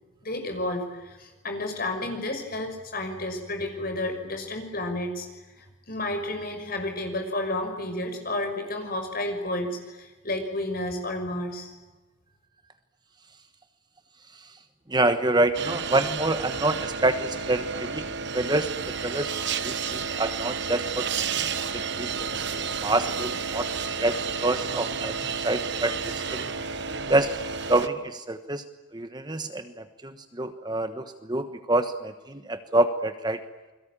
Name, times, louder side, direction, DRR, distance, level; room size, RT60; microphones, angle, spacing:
voice 1, 0.2-5.3 5.6-11.7, left 1 dB, 45° left, 5 dB, 6.0 m, -31 dB
voice 2, 14.9-18.0 18.3-19.3 19.6-21.5 21.7-23.7 23.9-26.5 27.1-27.3 27.7-28.6 28.9-33.4, right 2 dB, 20° right, 9 dB, 1.2 m, -27 dB
sound 1, 15.5-27.9, right 6 dB, 55° right, 1.3 m, -31 dB
29.0 x 22.0 x 8.9 m, 1.1 s
head